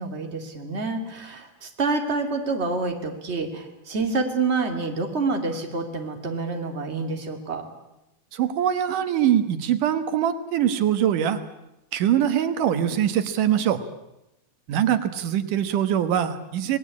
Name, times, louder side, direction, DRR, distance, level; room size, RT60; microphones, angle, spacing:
voice 1, 0.0-7.7, right 3 dB, 20° right, 4 dB, 2.8 m, -27 dB
voice 2, 8.3-11.4 11.9-13.8 14.7-16.8, right 10 dB, 85° right, 10 dB, 2.9 m, -23 dB
27.5 x 20.0 x 8.5 m, 0.91 s
omnidirectional pair, 3.6 m